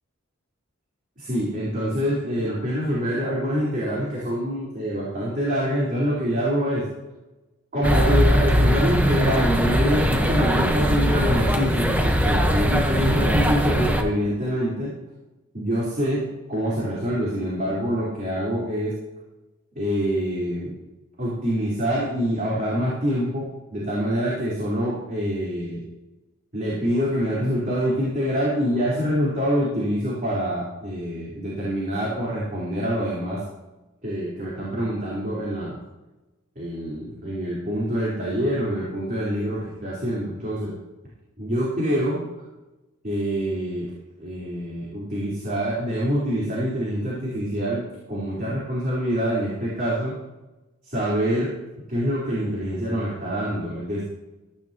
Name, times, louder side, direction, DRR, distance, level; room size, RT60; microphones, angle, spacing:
voice 1, 1.2-6.9 7.7-11.9 12.2-14.9 15.5-18.9 19.7-20.7 21.2-25.8 26.5-33.4 34.0-35.8 36.6-40.7 41.4-42.2 43.0-43.9 44.2-50.2 50.8-51.5 51.9-54.0, equal, 40° right, -7 dB, 4.3 m, -25 dB
sound 1, 7.8-14.0, equal, 10° right, 1.2 m, -20 dB
15.5 x 15.0 x 3.0 m, 1.1 s
head